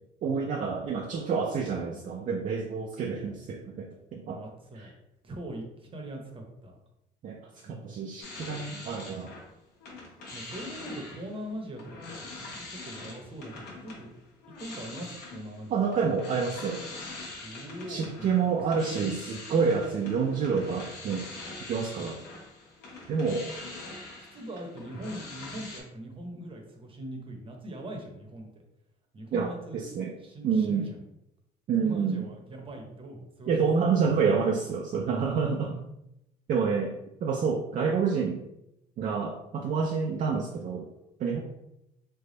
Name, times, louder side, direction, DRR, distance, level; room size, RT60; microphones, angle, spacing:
voice 1, 0.2-4.4 4.7-4.9 7.2-9.3 15.7-16.8 17.9-21.2 21.7-22.2 23.1-23.5 29.3-30.1 30.4-30.9 31.7-32.2 33.5-35.8 36.5-36.9 37.2-38.4 39.0-40.9 41.2-41.4, right 5 dB, 50° right, 1 dB, 0.4 m, -28 dB
voice 2, 4.3-4.9 5.2-6.7 10.3-14.1 14.6-15.7 17.4-18.3 18.7-18.8 23.7-23.8 24.2-28.6 29.1-29.9 30.2-31.0 31.8-34.2 41.3-41.4, right 1 dB, 30° right, 2 dB, 0.8 m, -41 dB
sound 1, 8.2-9.5 9.8-25.8, left 2 dB, 75° left, 1.0 m, -43 dB
3.4 x 2.2 x 3.8 m, 0.85 s
cardioid pair, 110°, 17 cm